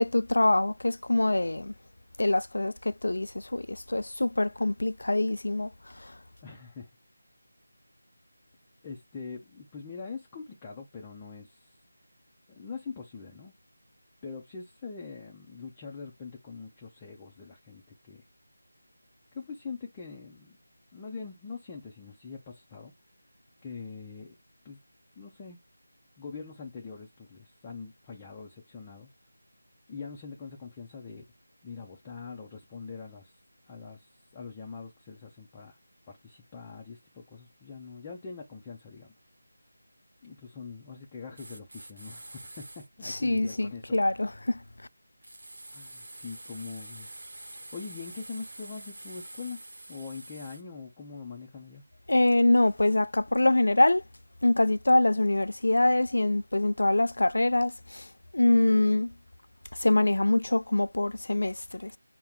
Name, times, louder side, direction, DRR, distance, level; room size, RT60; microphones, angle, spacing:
voice 1, 0.0-1.7 2.2-5.7 6.0-6.1 43.1-44.6 52.1-54.0 54.4-58.1 58.3-59.1 59.7-61.9, left 2 dB, 75° left, 0.4 m, -24 dB
voice 2, 6.4-6.9 8.8-11.8 12.5-13.5 14.2-18.2 19.3-20.6 20.9-22.9 23.6-24.4 24.6-24.8 25.2-25.6 26.2-29.1 29.9-31.2 31.6-33.3 33.7-35.8 36.1-39.1 40.2-44.1 45.7-47.2 47.7-49.6 49.9-51.8, left 5 dB, 15° left, 0.6 m, -43 dB
sound 1, 41.3-42.9 45.2-50.6, right 1 dB, 75° right, 0.9 m, -46 dB
5.6 x 2.2 x 3.6 m
figure-of-eight pair, 170°, 0 cm